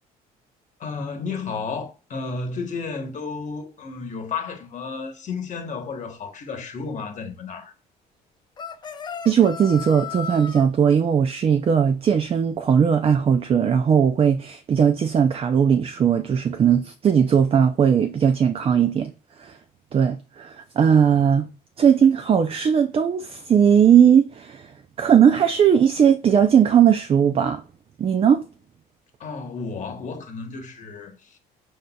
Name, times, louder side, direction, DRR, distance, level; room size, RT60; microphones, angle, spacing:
voice 1, 0.8-7.7 29.2-31.4, left 4 dB, 45° left, 1.1 m, -32 dB
sound 1, 8.6-10.7, left 7 dB, 25° left, 0.5 m, -35 dB
voice 2, 9.3-19.1 19.4-19.6 19.9-21.4 21.8-24.7 25.0-27.6 28.0-28.4, right 8 dB, 35° right, 0.5 m, -18 dB
5.0 x 4.2 x 2.3 m
cardioid pair, 110°, 17 cm